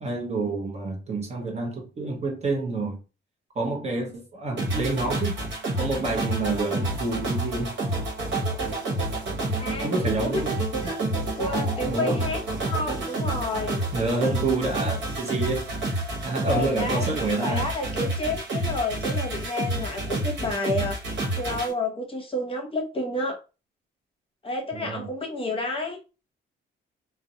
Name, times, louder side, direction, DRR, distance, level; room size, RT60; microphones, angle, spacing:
voice 1, 0.0-3.0 3.5-5.4 5.8-7.8 9.8-10.9 11.8-12.2 13.9-15.7 16.2-17.7 20.7-20.8 24.7-25.1, right 3 dB, 35° right, 0.7 m, -28 dB
sound 1, 4.6-21.7, right 2 dB, 65° right, 1.1 m, -29 dB
voice 2, 9.6-9.9 10.2-10.4 10.8-11.0 11.4-13.8 16.4-17.1 17.4-21.0 21.4-23.4 24.4-26.0, left 2 dB, 30° left, 0.8 m, -30 dB
sound 2, 11.4-11.9, left 1 dB, 10° left, 0.5 m, -37 dB
2.4 x 2.0 x 2.7 m
cardioid pair, 90°, 20 cm